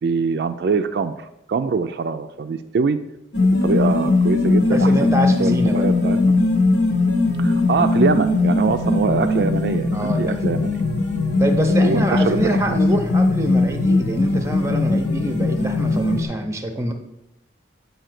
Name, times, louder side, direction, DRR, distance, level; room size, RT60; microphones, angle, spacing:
voice 1, 0.0-3.0 3.6-6.2 7.4-10.8 11.8-12.8, right 5 dB, 60° right, 8 dB, 0.3 m, -23 dB
sound 1, 3.3-16.3, left 2 dB, 80° left, 1.1 m, -19 dB
voice 2, 4.7-5.8 9.9-10.7 11.4-16.9, right 1 dB, 15° right, 6 dB, 0.6 m, -25 dB
7.7 x 2.7 x 5.8 m, 0.85 s
head